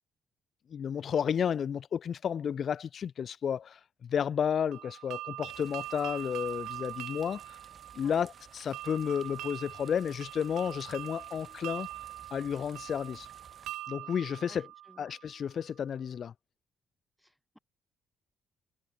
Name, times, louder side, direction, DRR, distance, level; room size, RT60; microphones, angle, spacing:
voice 1, 0.7-7.6 8.0-11.9 12.3-13.3 13.9-14.7 15.0-16.3, left 8 dB, 55° left, 0.4 m, -32 dB
sound 1, 4.7-15.5, right 14 dB, 90° right, 1.8 m, -43 dB
sound 2, 5.5-13.7, right 5 dB, 40° right, 3.8 m, -56 dB
voice 2, 14.5-15.1 17.2-17.6, equal, ahead, 3.2 m, -57 dB
cardioid pair, 90°, 0 cm